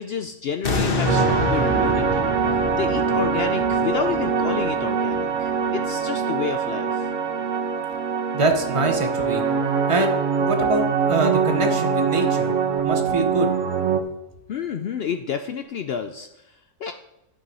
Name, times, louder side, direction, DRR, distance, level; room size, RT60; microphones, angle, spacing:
voice 1, 0.0-7.1 14.5-16.9, left 7 dB, 80° left, 8 dB, 0.5 m, -30 dB
sound 1, 0.6-5.7 6.2-6.3, left 2 dB, 40° left, 1.3 m, -27 dB
sound 2, 1.1-14.0, right 6 dB, 65° right, 1.2 m, -23 dB
voice 2, 8.3-9.4 9.9-12.5 12.8-13.5, right 2 dB, 25° right, 5 dB, 0.8 m, -24 dB
9.4 x 6.3 x 5.5 m, 0.88 s
omnidirectional pair, 1.6 m